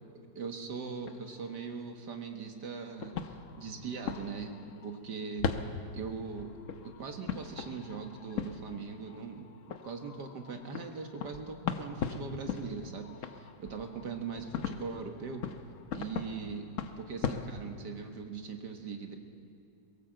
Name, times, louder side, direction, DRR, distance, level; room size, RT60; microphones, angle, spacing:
voice 1, 0.4-5.6 5.9-6.5 6.8-15.5 15.9-19.2, right 5 dB, 65° right, 4 dB, 2.1 m, -40 dB
sound 1, 0.8-1.7 2.9-5.1 5.4-18.2, left 6 dB, 55° left, 1.0 m, -40 dB
22.0 x 18.5 x 7.8 m, 2.4 s
omnidirectional pair, 2.0 m